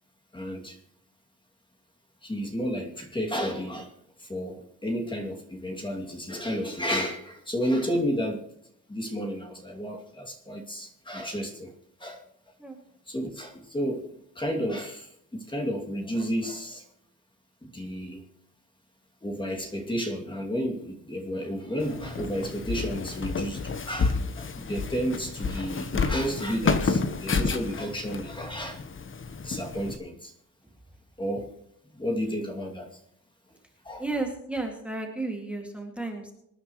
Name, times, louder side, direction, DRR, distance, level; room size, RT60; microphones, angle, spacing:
voice 1, 0.3-0.8 2.2-3.9 4.2-8.5 8.9-11.7 12.0-12.2 13.1-16.9 17.6-18.2 19.2-28.8 29.4-30.3 31.2-31.5 31.9-33.0 33.8-34.0, equal, 15° left, 0 dB, 2.6 m, -32 dB
Walk footsteps, 21.8-30.0, left 4 dB, 35° left, 1.2 m, -30 dB
voice 2, 34.0-36.3, right 2 dB, 5° right, 2 dB, 2.3 m, -33 dB
25.5 x 9.9 x 3.2 m, 0.77 s
cardioid pair, 120°, 33 cm